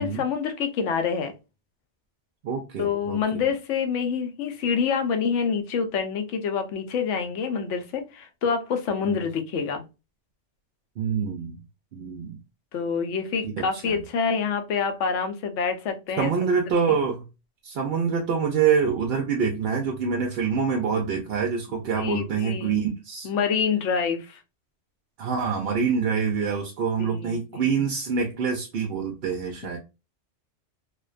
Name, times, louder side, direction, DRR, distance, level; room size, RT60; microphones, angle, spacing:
voice 1, 0.0-1.3 2.8-9.8 12.7-17.0 21.7-22.8 23.2-24.4 27.0-27.8, left 6 dB, 85° left, 0.9 m, -27 dB
voice 2, 2.4-3.4 9.0-9.1 11.0-11.6 11.9-12.4 13.6-14.0 16.2-17.3 17.6-23.3 25.2-29.8, right 6 dB, 65° right, 0.7 m, -26 dB
2.4 x 2.1 x 2.3 m
omnidirectional pair, 1.2 m